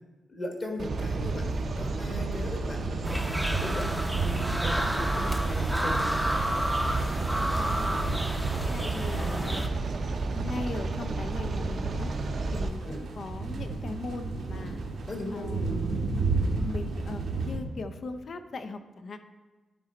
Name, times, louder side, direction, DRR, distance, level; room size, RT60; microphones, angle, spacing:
voice 1, 0.3-4.0 4.6-6.4 12.8-13.0 15.0-15.7, left 1 dB, 40° left, 2 dB, 1.4 m, -38 dB
sound 1, 0.8-12.7, right 3 dB, 55° right, 0.6 m, -32 dB
sound 2, 0.9-17.6, right 3 dB, 80° right, 1.0 m, -34 dB
sound 3, 3.0-9.7, equal, ahead, 0.6 m, -31 dB
voice 2, 7.5-8.0 8.6-9.7 10.3-12.1 12.5-14.8 15.3-16.0 16.6-19.2, left 3 dB, 55° left, 9 dB, 0.5 m, -39 dB
11.0 x 3.8 x 4.3 m, 1.3 s
cardioid pair, 85°, 0 cm